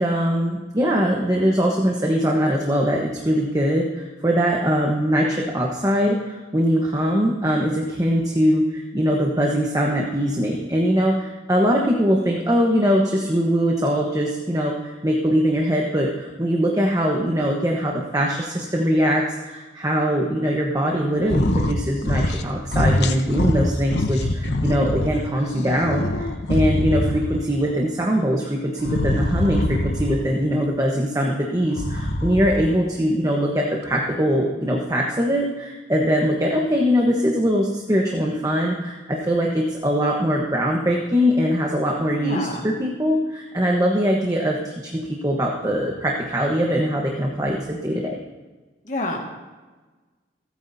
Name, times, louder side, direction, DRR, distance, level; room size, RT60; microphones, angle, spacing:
voice 1, 0.0-48.2, equal, 20° right, -1 dB, 1.1 m, -22 dB
sound 1, 21.2-21.8 22.0-22.5 22.7-25.1 25.5-27.4 28.8-30.2 31.6-32.7, left 1 dB, 60° left, 0.9 m, -23 dB
voice 2, 42.2-42.6 48.8-49.2, left 2 dB, 40° left, -1 dB, 1.8 m, -28 dB
28.0 x 9.5 x 2.8 m, 1.3 s
head